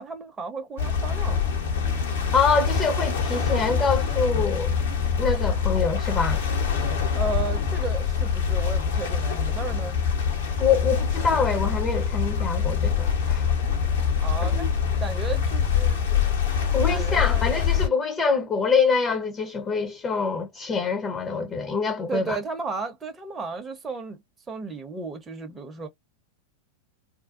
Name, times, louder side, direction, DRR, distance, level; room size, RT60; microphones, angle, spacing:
voice 1, 0.0-1.4 7.1-10.0 14.2-14.7 15.0-16.3 16.7-17.4 22.1-24.2 24.5-25.9, right 4 dB, 15° right, 0.8 m, -34 dB
sound 1, 0.8-17.9, left 7 dB, 60° left, 1.0 m, -24 dB
voice 2, 2.3-4.7 5.2-6.4 10.6-13.4 14.4-14.7 16.7-22.4, left 5 dB, 25° left, 0.8 m, -25 dB
2.5 x 2.2 x 2.5 m
figure-of-eight pair, 95°, 0 cm